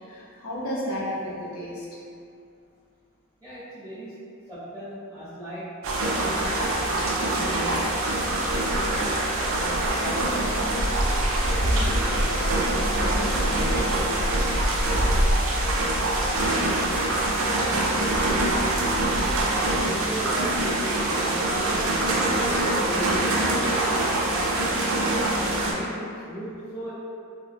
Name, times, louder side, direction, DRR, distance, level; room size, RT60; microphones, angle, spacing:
voice 1, 0.0-2.0 11.4-14.8 18.3-18.5 18.8-18.9 19.2-20.1 23.8-23.9, left 1 dB, 85° left, -6 dB, 0.6 m, -35 dB
voice 2, 3.4-4.1 4.5-10.5 20.0-23.4 23.9-26.9, right 1 dB, 5° left, -14 dB, 0.6 m, -37 dB
sound 1, 5.8-25.7, right 1 dB, 65° right, 0.4 m, -24 dB
2.2 x 2.0 x 3.3 m, 2.4 s
head